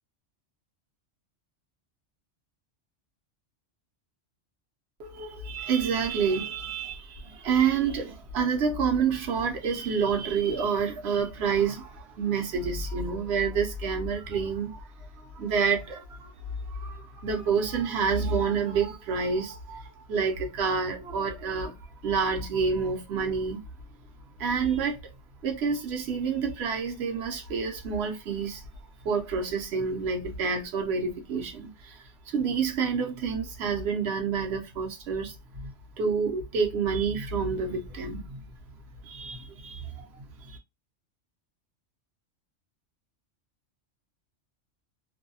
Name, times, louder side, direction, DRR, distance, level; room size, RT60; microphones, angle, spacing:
voice 1, 5.0-14.9 15.2-16.3 16.7-21.7 22.0-23.6 24.4-25.1 25.4-28.6 29.0-35.7 36.0-38.4 39.0-40.6, right 5 dB, 65° right, 0.9 m, -28 dB
2.6 x 2.2 x 2.7 m
omnidirectional pair, 1.2 m